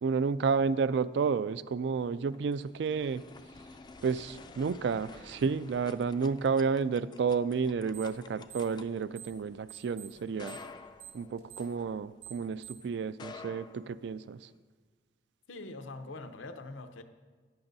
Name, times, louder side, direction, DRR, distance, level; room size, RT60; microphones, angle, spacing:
voice 1, 0.0-3.2 4.0-10.6 11.1-14.5, right 5 dB, 60° right, 16 dB, 0.3 m, -31 dB
sound 1, 2.1-12.4 13.0-14.5, left 4 dB, 20° left, 0.3 m, -51 dB
sound 2, 7.9-8.2 8.4-9.4 9.7-12.9, right 10 dB, 90° right, 2.7 m, -48 dB
voice 2, 15.5-17.0, left 2 dB, 85° left, 8 dB, 0.8 m, -43 dB
14.5 x 11.0 x 2.7 m, 1.5 s
head